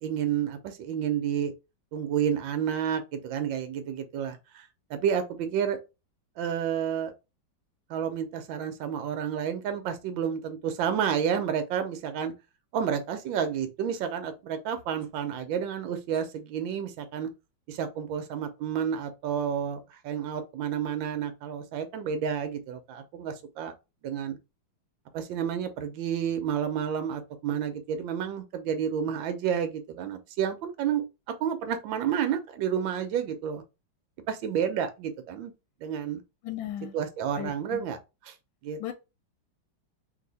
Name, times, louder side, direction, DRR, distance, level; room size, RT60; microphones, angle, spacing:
voice 1, 0.0-1.5 1.9-4.6 4.9-5.8 6.4-7.1 7.9-12.3 12.7-17.3 17.7-23.7 24.0-24.4 25.1-33.6 34.3-35.5 35.8-36.2 36.9-38.0 38.2-38.3 38.6-38.9, right 8 dB, 75° right, 1.4 m, -30 dB
voice 2, 36.4-36.9 37.3-37.8 38.8-38.9, left 11 dB, 80° left, 1.3 m, -36 dB
3.3 x 2.9 x 4.0 m
omnidirectional pair, 2.2 m